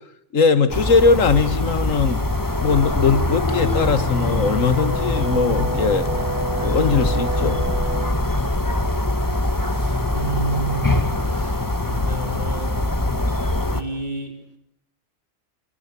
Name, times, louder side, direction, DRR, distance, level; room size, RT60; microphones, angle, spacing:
voice 1, 0.3-2.2 2.6-6.1 6.6-7.7, left 4 dB, 75° left, 13 dB, 2.0 m, -20 dB
sound 1, 0.7-13.8, left 2 dB, 15° left, 1.4 m, -23 dB
Brass instrument, 4.0-8.2, right 2 dB, 10° right, 2.4 m, -30 dB
voice 2, 9.6-10.9 11.3-12.8 13.7-14.3, right 3 dB, 35° right, 5 dB, 4.4 m, -30 dB
28.5 x 24.5 x 8.4 m, 0.74 s
omnidirectional pair, 1.4 m